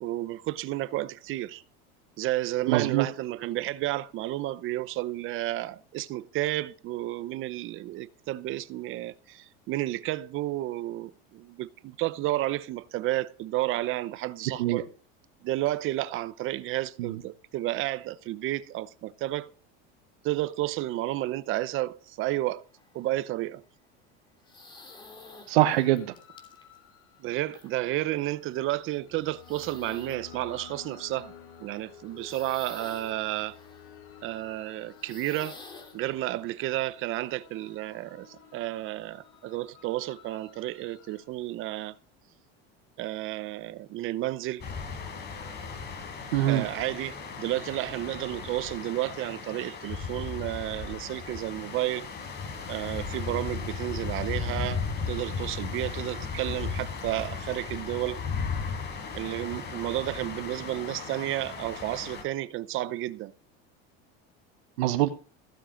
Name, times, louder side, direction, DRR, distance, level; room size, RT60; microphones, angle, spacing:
voice 1, 0.0-1.6 2.2-14.8 15.4-19.5 20.2-22.6 22.9-23.6 27.2-31.3 31.6-33.6 34.2-35.6 35.9-42.0 43.0-44.6 46.5-52.1 52.7-58.2 59.1-63.3, right 16 dB, 40° right, 0.8 m, -31 dB
voice 2, 2.7-3.1 14.6-14.8 17.0-17.2 25.5-26.1 46.3-46.6 64.8-65.1, right 14 dB, 90° right, 1.1 m, -24 dB
sound 1, 22.8-23.2 24.5-26.8 27.5-27.7 28.1-28.2 29.3-30.2 30.4-30.8 31.4-31.5 32.2-34.0 34.9-36.0, left 3 dB, 15° left, 2.9 m, -49 dB
sound 2, 24.4-41.3, left 8 dB, 75° left, 7.1 m, -53 dB
sound 3, 44.6-62.2, left 5 dB, 35° left, 4.0 m, -36 dB
15.5 x 7.5 x 5.1 m
supercardioid pair, 140°, 30 cm